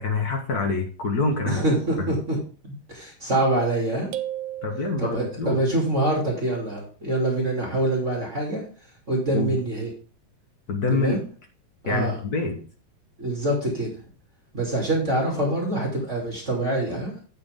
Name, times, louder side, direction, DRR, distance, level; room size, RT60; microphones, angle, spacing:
voice 1, 0.0-1.6 2.0-2.2 4.6-5.6 9.3-9.6 10.7-11.2 11.8-12.7, left 3 dB, 85° left, 3 dB, 0.8 m, -26 dB
voice 2, 1.5-2.4 2.6-4.1 5.0-8.6 9.1-9.9 10.9-11.2 11.8-12.2 13.2-13.9 14.5-17.1, right 1 dB, 25° right, -2 dB, 2.8 m, -25 dB
sound 1, 4.1-5.6, right 12 dB, 85° right, 2.1 m, -35 dB
9.1 x 7.8 x 3.6 m, 0.38 s
omnidirectional pair, 3.5 m